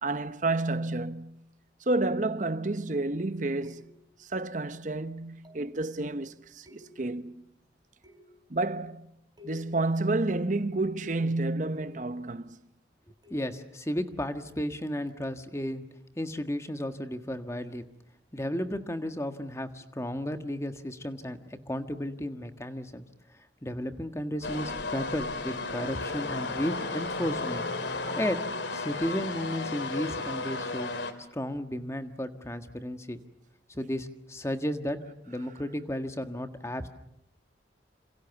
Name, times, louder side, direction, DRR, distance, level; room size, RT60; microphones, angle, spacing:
voice 1, 0.0-1.3 1.9-3.9 4.2-7.4 8.5-9.1 9.4-12.6, right 2 dB, 45° right, 1.0 m, -30 dB
sound 1, 3.6-4.2 5.4-5.8 6.7-7.3 8.0-8.5 9.4-9.9 10.5-12.2 13.2-13.7 15.1-15.3, left 5 dB, 25° right, 3.7 m, -53 dB
voice 2, 13.3-15.8 16.2-17.9 18.3-21.4 21.7-23.0 23.6-27.6 28.2-28.4 28.7-30.9 31.3-33.2 33.7-35.0 35.3-36.9, equal, 15° left, 1.6 m, -33 dB
sound 2, 24.4-31.1, left 3 dB, 85° left, 2.5 m, -34 dB
28.0 x 27.0 x 7.1 m
head